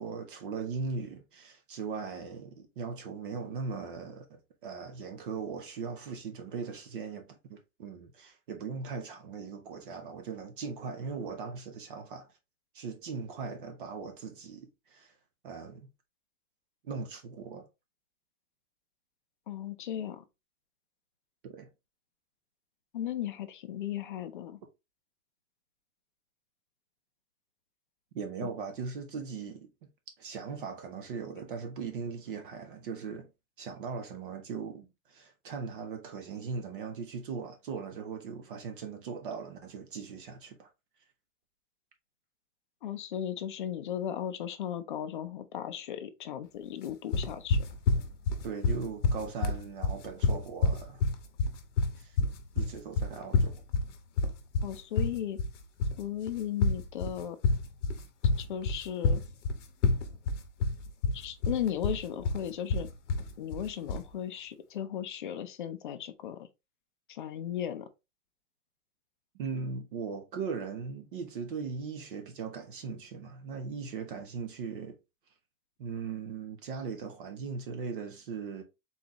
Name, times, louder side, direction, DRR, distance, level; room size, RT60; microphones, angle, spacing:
voice 1, 0.0-12.3 12.7-15.1 15.4-15.9 16.8-17.7 21.4-21.7 28.1-29.7 30.2-33.3 33.6-40.7 48.4-51.0 52.0-52.2 52.5-53.6 69.3-75.0 75.8-78.6, right 5 dB, 35° right, 0.7 m, -39 dB
voice 2, 19.5-20.2 22.9-24.6 28.4-28.5 42.8-47.6 54.6-55.4 56.0-57.4 58.4-59.2 61.1-62.9 63.4-66.5 67.1-67.9, left 10 dB, 35° left, 0.5 m, -36 dB
sound 1, 47.1-64.1, left 3 dB, 55° left, 1.0 m, -28 dB
4.0 x 3.8 x 2.9 m
supercardioid pair, 170°, 44 cm